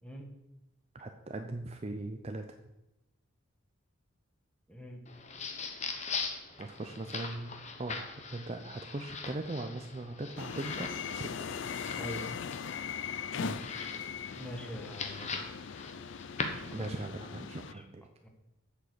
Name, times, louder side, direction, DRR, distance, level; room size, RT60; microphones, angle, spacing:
voice 1, 0.9-2.5 6.6-11.3 13.4-13.6 16.7-18.1, right 2 dB, 30° right, 5 dB, 0.5 m, -40 dB
voice 2, 4.7-5.0 12.0-12.3 14.3-15.3 16.6-16.9 17.7-17.8 18.2-18.3, equal, 5° left, 2 dB, 1.4 m, -43 dB
sound 1, 5.1-17.1, left 4 dB, 35° left, 1.1 m, -41 dB
sound 2, 10.4-17.7, left 7 dB, 60° left, 0.4 m, -40 dB
7.5 x 6.7 x 8.0 m, 0.94 s
head